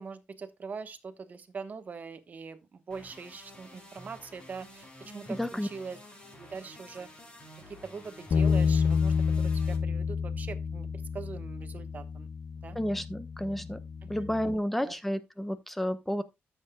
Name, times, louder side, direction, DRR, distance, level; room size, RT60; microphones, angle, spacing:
voice 1, 0.0-6.0 6.4-7.1 7.7-12.3 12.6-12.8 14.0-14.1 14.8-14.9, right 5 dB, 40° right, 1.2 m, -42 dB
sound 1, 2.9-9.8, left 1 dB, 25° left, 3.4 m, -50 dB
voice 2, 5.3-5.7 12.7-13.8 14.1-16.2, equal, 5° left, 0.9 m, -31 dB
Bass guitar, 8.3-14.6, left 6 dB, 50° left, 0.5 m, -29 dB
13.5 x 7.6 x 2.3 m
wide cardioid pair, 155°, 4 cm